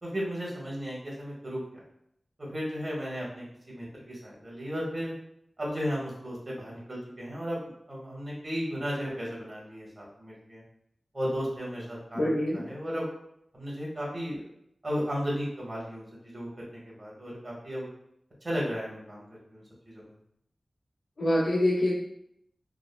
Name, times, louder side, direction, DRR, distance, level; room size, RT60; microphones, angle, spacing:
voice 1, 0.0-1.8 2.4-5.1 5.6-7.6 7.9-10.6 11.1-12.3 12.5-13.1 13.5-14.4 14.8-17.9 18.4-20.1, equal, 40° right, -5 dB, 1.3 m, -35 dB
voice 2, 12.1-12.6 21.2-22.0, left 1 dB, 90° left, -13 dB, 1.1 m, -25 dB
3.6 x 2.1 x 2.2 m, 0.75 s
cardioid pair, 50°, 0 cm